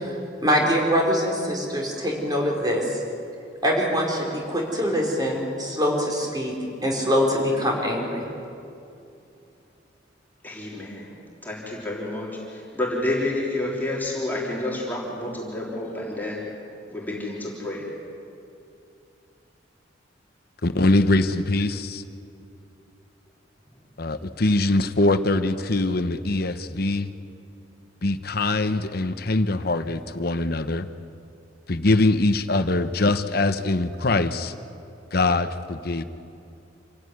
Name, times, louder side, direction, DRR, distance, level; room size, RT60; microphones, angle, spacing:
voice 1, 0.4-2.8 3.6-6.5 6.8-8.2, equal, 20° right, -1 dB, 4.5 m, -23 dB
voice 2, 10.4-11.1 11.4-12.3 12.7-16.4 16.9-17.9, left 1 dB, 10° left, -4 dB, 3.6 m, -29 dB
voice 3, 20.6-21.9 24.0-27.1 28.0-30.9 31.7-34.5 35.1-36.0, left 2 dB, 55° left, 10 dB, 1.0 m, -22 dB
27.5 x 16.0 x 9.6 m, 2.7 s
head